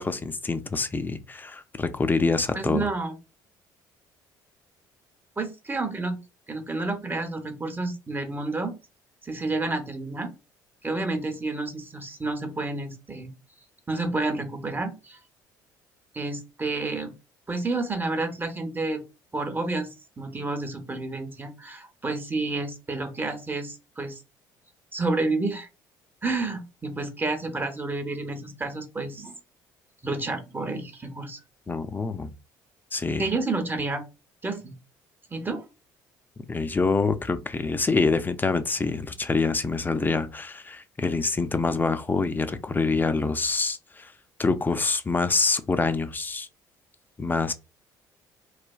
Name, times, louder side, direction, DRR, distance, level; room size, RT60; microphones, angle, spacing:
voice 1, 0.0-2.9 31.7-32.3 32.9-33.3 36.5-44.1 44.4-46.5 47.2-47.5, left 3 dB, 20° left, 0.4 m, -26 dB
voice 2, 2.5-3.2 5.4-6.2 6.5-8.8 9.2-10.3 10.8-13.3 13.9-15.2 16.1-17.1 17.5-19.0 19.3-19.9 20.2-24.2 24.9-25.7 26.2-29.3 30.0-31.4 33.2-34.0 34.4-34.7 35.3-35.6, right 3 dB, 20° right, 0.8 m, -30 dB
3.2 x 2.2 x 2.3 m
hypercardioid pair, 65°, 9 cm